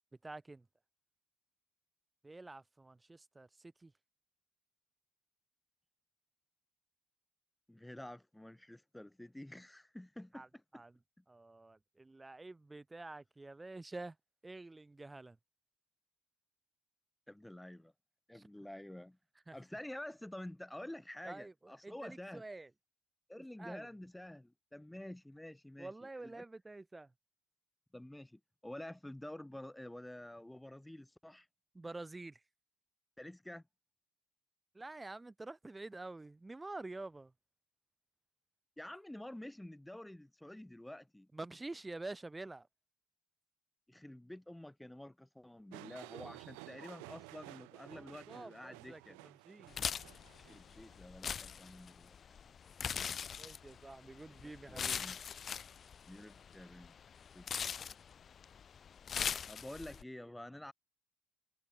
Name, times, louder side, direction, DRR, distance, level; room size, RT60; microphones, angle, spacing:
voice 1, 0.2-0.7 2.2-3.9 10.3-10.5 10.7-10.9 11.3-14.2 14.4-15.4 18.3-18.5 19.5-19.6 21.2-22.7 23.6-23.9 25.8-27.1 31.7-32.4 34.7-37.3 41.3-42.7 47.9-49.8 53.4-55.0, right 2 dB, 15° right, 1.1 m, -48 dB
voice 2, 7.7-10.6 11.2-11.3 17.3-17.9 18.3-19.2 19.5-22.4 23.3-26.4 27.9-31.5 33.2-33.6 38.8-41.3 43.9-49.2 50.4-52.2 54.4-55.2 56.1-56.9 57.3-57.5 59.4-60.7, left 1 dB, 5° left, 1.8 m, -49 dB
sound 1, 45.7-51.0, right 40 dB or more, 85° right, 5.5 m, -53 dB
sound 2, 49.7-60.0, left 7 dB, 45° left, 0.8 m, -42 dB
supercardioid pair, 75°, 0 cm